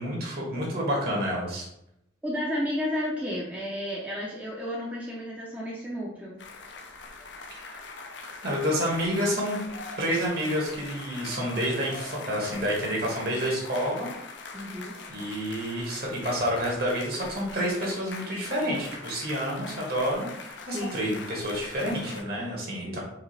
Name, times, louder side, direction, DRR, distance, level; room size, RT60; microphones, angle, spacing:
voice 1, 0.0-1.7 7.5-7.9 8.4-9.6 10.0-14.1 15.1-23.0, equal, 55° right, -2 dB, 1.5 m, -29 dB
voice 2, 2.2-6.4 14.5-14.9 20.7-21.0 22.8-23.0, equal, 10° right, -5 dB, 0.6 m, -32 dB
sound 1, 6.4-22.2, left 4 dB, 70° left, 0.6 m, -42 dB
4.8 x 3.2 x 3.3 m, 0.81 s
head